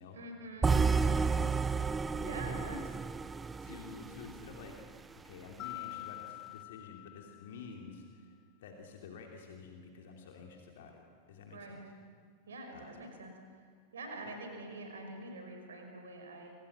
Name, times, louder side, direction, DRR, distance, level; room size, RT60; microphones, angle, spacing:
voice 1, 0.1-0.8 2.2-2.8 11.5-11.8 12.5-13.6 13.9-16.5, right 1 dB, 65° right, 4 dB, 5.5 m, -45 dB
sound 1, 0.6-4.7, right 5 dB, 15° right, 0.7 m, -31 dB
voice 2, 0.8-1.7 2.5-2.8 3.6-4.7 5.1-10.9 11.3-11.8 12.7-13.0, left 5 dB, 55° left, 1 dB, 3.0 m, -50 dB
Mallet percussion, 5.6-8.0, left 20 dB, 35° left, 0.6 m, -46 dB
29.5 x 26.0 x 6.4 m, 2.2 s
figure-of-eight pair, 90°, 0 cm